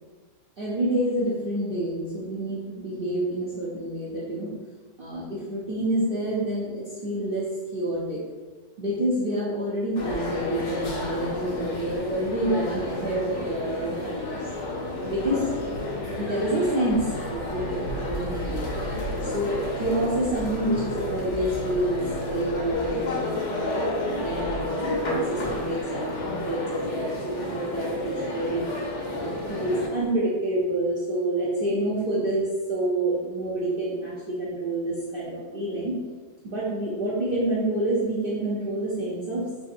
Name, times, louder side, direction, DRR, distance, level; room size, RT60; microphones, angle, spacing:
voice 1, 0.6-4.5 5.0-8.3 8.8-14.4 15.0-15.5 16.1-18.7 19.2-28.7 29.1-36.0 36.4-39.5, right 1 dB, 60° right, -8 dB, 0.5 m, -28 dB
sound 1, 10.0-29.9, left 1 dB, 60° left, 0.8 m, -31 dB
sound 2, 16.9-22.7, right 2 dB, 90° right, 1.3 m, -38 dB
4.9 x 2.5 x 2.6 m, 1.4 s
omnidirectional pair, 1.9 m